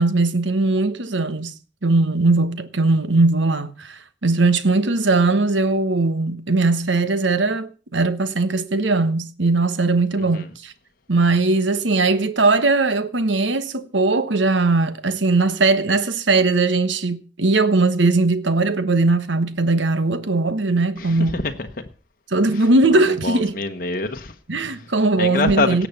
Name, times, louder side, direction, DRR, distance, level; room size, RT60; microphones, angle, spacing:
voice 1, 0.0-1.5 1.8-10.7 11.1-21.4 22.3-23.6 24.5-25.9, right 3 dB, 80° right, 1.3 m, -19 dB
voice 2, 10.1-10.5 21.0-21.9 22.5-22.6 22.9-24.3 24.6-24.9 25.2-25.9, left 3 dB, 45° left, 1.2 m, -26 dB
17.5 x 6.8 x 7.0 m
head